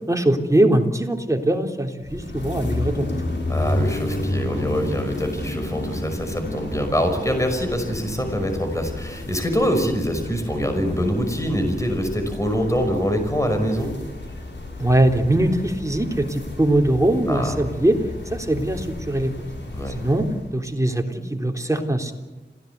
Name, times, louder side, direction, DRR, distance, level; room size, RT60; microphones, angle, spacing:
voice 1, 0.1-3.2 14.8-18.0 18.3-19.3 19.9-20.3 20.5-22.1, right 1 dB, 15° right, 2 dB, 3.6 m, -21 dB
sound 1, 2.0-20.6, left 1 dB, 80° left, 6.3 m, -31 dB
voice 2, 3.5-13.9 17.3-17.6 19.7-20.0, equal, 15° left, 5 dB, 5.5 m, -24 dB
27.0 x 17.0 x 8.3 m, 1.3 s
wide cardioid pair, 65°, 19 cm